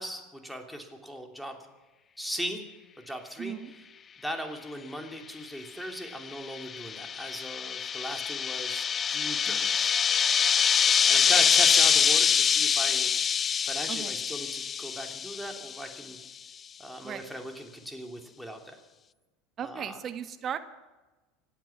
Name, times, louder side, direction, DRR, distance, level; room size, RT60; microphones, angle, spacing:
voice 1, 0.0-1.5 2.2-2.6 3.1-3.6 4.2-9.9 11.1-13.1 13.6-16.2 16.8-18.8 19.6-20.0, equal, ahead, 3 dB, 2.8 m, -38 dB
voice 2, 3.4-3.7 9.5-9.7 13.9-14.1 17.0-17.3 19.6-20.6, right 9 dB, 40° right, 9 dB, 1.4 m, -37 dB
sound 1, 6.1-15.9, left 7 dB, 30° left, 0.4 m, -25 dB
26.0 x 9.1 x 5.9 m, 1.2 s
hypercardioid pair, 75°, 0 cm